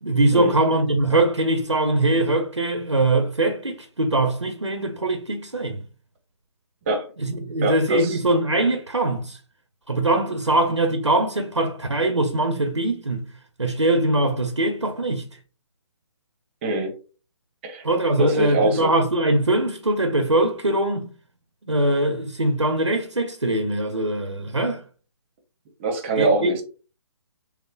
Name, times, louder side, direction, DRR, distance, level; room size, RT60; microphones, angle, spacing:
voice 1, 0.0-5.8 7.2-9.4 9.9-13.3 13.6-15.3 17.8-21.1 21.7-24.8 26.2-26.6, right 2 dB, 90° right, 0.6 m, -22 dB
voice 2, 7.6-8.2 16.6-16.9 17.6-17.9 18.2-18.9 25.8-26.6, right 2 dB, 25° right, 0.7 m, -23 dB
5.4 x 2.0 x 2.2 m
figure-of-eight pair, 135°, 15 cm